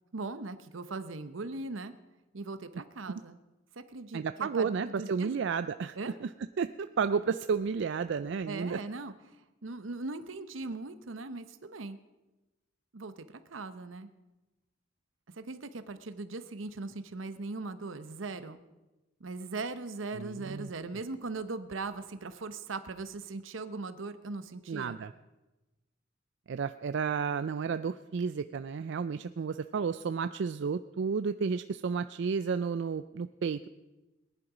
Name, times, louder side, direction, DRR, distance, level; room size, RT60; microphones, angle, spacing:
voice 1, 0.1-1.9 2.3-3.4 3.8-5.3 5.9-6.2 8.5-9.1 9.6-12.0 12.9-14.1 15.3-18.6 19.2-25.0, right 3 dB, 90° right, 11 dB, 0.8 m, -39 dB
voice 2, 4.1-6.3 6.6-8.8 20.1-20.7 24.7-25.1 26.5-33.7, right 5 dB, 65° right, 12 dB, 0.4 m, -32 dB
19.0 x 11.0 x 5.0 m, 1.1 s
head